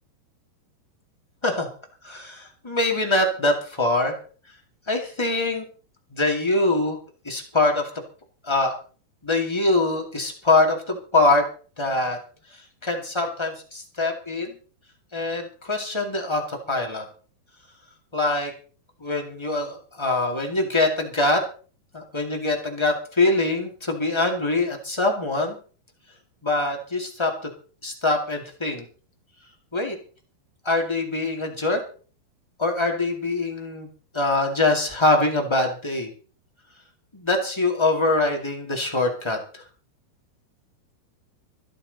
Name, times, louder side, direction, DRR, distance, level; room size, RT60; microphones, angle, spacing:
voice 1, 2.0-4.2 4.9-5.6 6.1-7.0 7.2-7.9 8.4-8.7 9.2-11.5 11.8-12.2 12.5-14.5 15.1-17.0 18.1-18.5 19.0-21.4 21.9-25.6 26.4-27.5 27.8-28.8 29.7-30.0 30.6-31.8 32.6-33.9 34.1-36.1 37.1-39.6, left 2 dB, 20° left, 2 dB, 0.8 m, -23 dB
25.0 x 9.0 x 4.1 m, 0.40 s
omnidirectional pair, 4.6 m